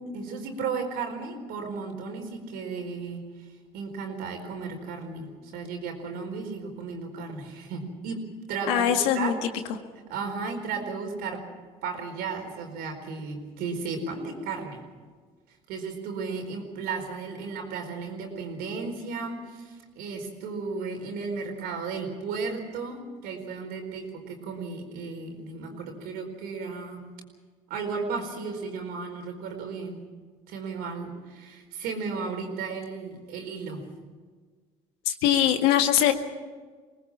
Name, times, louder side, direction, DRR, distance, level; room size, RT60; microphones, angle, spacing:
voice 1, 0.0-3.5 3.7-8.2 8.5-9.4 10.1-11.5 11.8-14.8 15.5-27.0 27.7-30.0 30.5-33.8, right 4 dB, 80° right, 3 dB, 4.6 m, -34 dB
voice 2, 8.7-9.3 35.1-36.1, left 10 dB, 90° left, 6 dB, 1.9 m, -22 dB
23.0 x 19.5 x 7.4 m, 1.5 s
supercardioid pair, 75°, 16 cm